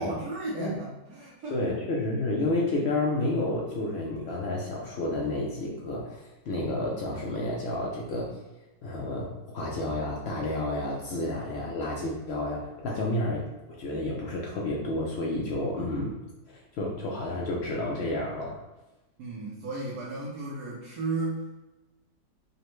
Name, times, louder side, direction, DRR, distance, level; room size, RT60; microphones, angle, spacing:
voice 1, 0.0-1.6 19.2-21.6, right 2 dB, 70° right, -6 dB, 1.2 m, -34 dB
voice 2, 1.5-8.3 8.8-13.4 13.8-16.2 16.5-18.6, left 2 dB, 85° left, -3 dB, 0.5 m, -30 dB
5.1 x 2.1 x 3.0 m, 1.0 s
omnidirectional pair, 1.8 m